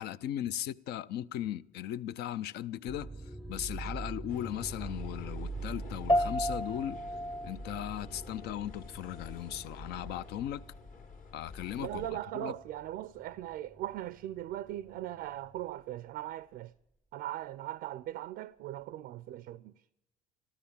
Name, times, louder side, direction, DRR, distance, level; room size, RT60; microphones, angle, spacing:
voice 1, 0.0-3.1 3.5-7.0 7.4-10.6 11.3-12.1 12.4-12.5, left 11 dB, 75° left, 0.6 m, -37 dB
sound 1, 2.9-12.3 12.7-13.1 13.8-14.1, right 3 dB, ahead, 0.6 m, -43 dB
sound 2, 4.3-12.1, left 5 dB, 55° left, 1.8 m, -50 dB
sound 3, 6.1-15.7, equal, 25° left, 0.9 m, -37 dB
voice 2, 11.8-16.7 17.1-19.7, right 13 dB, 75° right, 0.4 m, -39 dB
13.5 x 13.0 x 7.1 m
cardioid pair, 110°, 17 cm